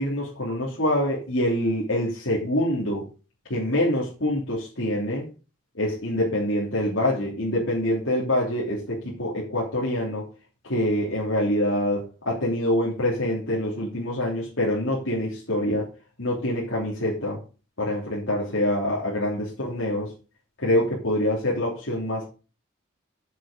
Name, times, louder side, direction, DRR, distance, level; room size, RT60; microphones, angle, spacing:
voice 1, 0.0-3.0 3.5-5.2 5.7-10.2 10.6-15.9 16.2-17.4 17.8-20.1 20.6-22.3, left 1 dB, 70° left, -5 dB, 3.1 m, -25 dB
8.4 x 6.5 x 5.0 m, 0.34 s
head